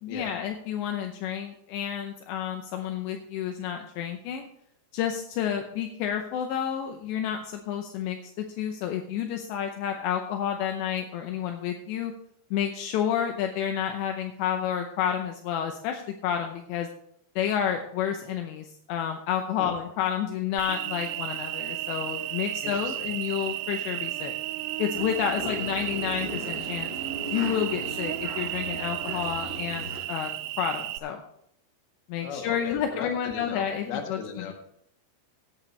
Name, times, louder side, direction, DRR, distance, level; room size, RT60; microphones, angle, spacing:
voice 1, 0.0-4.5 4.9-12.1 12.5-16.9 17.4-24.3 24.8-26.9 27.3-30.3 30.6-31.2 32.1-34.2, left 9 dB, 80° left, 4 dB, 3.0 m, -30 dB
Cricket, 20.6-31.0, right 16 dB, 85° right, 2.5 m, -33 dB
voice 2, 22.6-23.1 25.4-25.6 32.2-34.5, left 6 dB, 65° left, 3 dB, 3.2 m, -37 dB
sound 1, 24.9-30.0, right 1 dB, 35° left, 6.8 m, -38 dB
17.0 x 8.8 x 3.2 m, 0.72 s
omnidirectional pair, 5.2 m